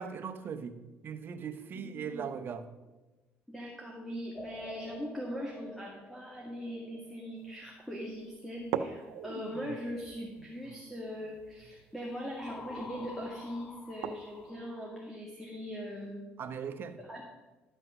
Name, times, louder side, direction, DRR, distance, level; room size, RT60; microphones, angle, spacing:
voice 1, 0.0-2.7 16.4-17.0, right 6 dB, 50° right, 8 dB, 1.1 m, -39 dB
voice 2, 1.8-2.3 3.5-16.2 17.0-17.2, equal, ahead, -2 dB, 2.0 m, -41 dB
sound 1, 4.3-7.6 12.4-15.2, left 3 dB, 25° left, 0.7 m, -49 dB
sound 2, 7.4-7.5 8.0-8.1 8.6-14.5, right 8 dB, 90° right, 0.7 m, -42 dB
12.5 x 5.8 x 6.2 m, 1.1 s
cardioid pair, 100°, 5 cm